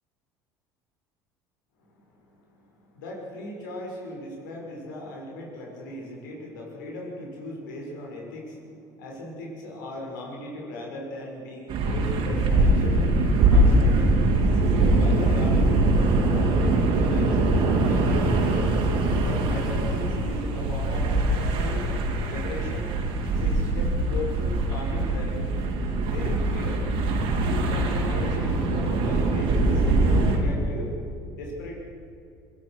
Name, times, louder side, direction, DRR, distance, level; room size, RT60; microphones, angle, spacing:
voice 1, 1.9-13.1 13.5-18.7 19.2-21.9 22.2-23.0 23.2-25.5 26.0-26.9 27.4-30.9 31.3-31.7, left 1 dB, 85° left, -1 dB, 6.4 m, -38 dB
sound 1, 11.7-30.4, right 2 dB, 65° right, 4.4 m, -22 dB
26.0 x 16.5 x 6.5 m, 2.6 s
hypercardioid pair, 75°, 10 cm